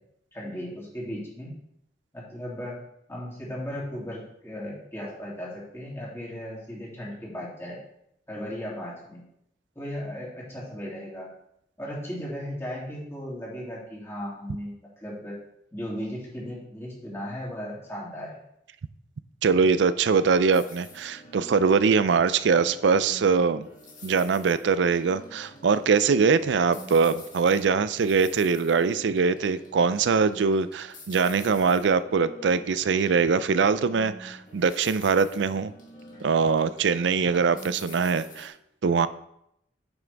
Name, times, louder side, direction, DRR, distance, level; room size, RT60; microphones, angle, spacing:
voice 1, 0.3-1.5 2.1-2.8 3.1-7.8 8.3-9.2 9.7-11.3 11.8-15.4 15.7-18.4, equal, 15° left, -6 dB, 2.7 m, -36 dB
voice 2, 19.4-23.7 24.0-35.7 36.2-38.5 38.8-39.1, right 5 dB, 75° right, 15 dB, 0.4 m, -22 dB
sound 1, 20.5-38.5, left 1 dB, 45° left, 2.2 m, -47 dB
9.0 x 5.9 x 3.4 m, 0.76 s
head